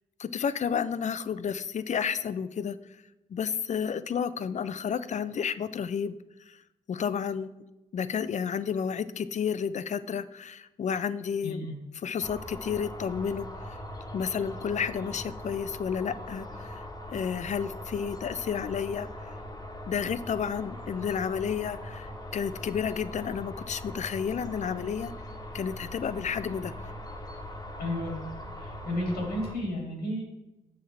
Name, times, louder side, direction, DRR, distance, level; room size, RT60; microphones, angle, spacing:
voice 1, 0.2-2.8 3.3-6.1 6.5-6.6 6.9-7.6 7.9-11.7 12.0-13.8 14.1-16.8 17.1-19.4 19.9-25.1 25.5-26.7, left 7 dB, 50° left, 14 dB, 0.4 m, -31 dB
voice 2, 11.4-11.8 27.8-28.2 28.6-30.2, left 1 dB, 85° left, -1 dB, 2.0 m, -32 dB
sound 1, 12.2-29.6, left 1 dB, 25° left, 1.1 m, -41 dB
6.2 x 5.7 x 3.3 m, 0.97 s
supercardioid pair, 50°, 16 cm